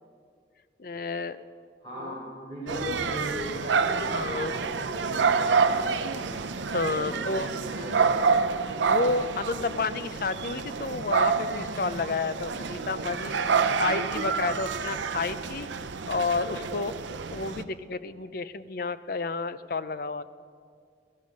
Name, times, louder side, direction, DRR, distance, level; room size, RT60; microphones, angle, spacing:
voice 1, 0.8-1.4 2.0-2.1 4.1-4.5 6.7-7.5 8.7-13.4 13.8-15.7 16.1-16.9 17.3-20.2, left 3 dB, 50° left, 14 dB, 0.5 m, -30 dB
voice 2, 1.8-6.3 6.9-8.4, left 1 dB, 25° left, -6 dB, 4.5 m, -38 dB
sound 1, 2.7-17.6, right 5 dB, 85° right, 0.6 m, -28 dB
17.0 x 14.0 x 5.1 m, 2.1 s
head